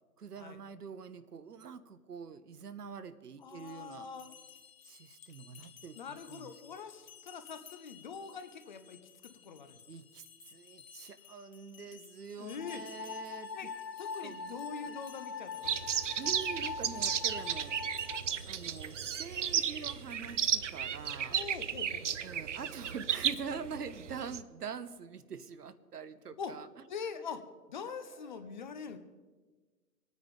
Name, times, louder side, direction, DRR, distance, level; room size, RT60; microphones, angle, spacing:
voice 1, 0.2-4.1 4.8-6.5 9.9-13.7 14.2-14.4 14.9-15.0 16.2-17.8 18.5-21.4 22.2-26.7 27.8-28.6, right 6 dB, 65° right, 13 dB, 1.1 m, -45 dB
sound 1, 3.4-20.9, left 8 dB, 50° left, 1.3 m, -57 dB
voice 2, 3.4-4.3 5.9-9.8 12.4-12.8 13.5-13.7 14.0-15.8 21.3-22.2 26.4-26.5 26.9-27.4 27.7-29.0, left 6 dB, 30° left, 9 dB, 0.8 m, -43 dB
sound 2, 12.6-18.2, left 5 dB, 90° left, 0.9 m, -42 dB
sound 3, 15.6-24.4, right 8 dB, 45° right, 0.6 m, -34 dB
23.0 x 9.5 x 5.2 m, 1.3 s
figure-of-eight pair, 135°, 49 cm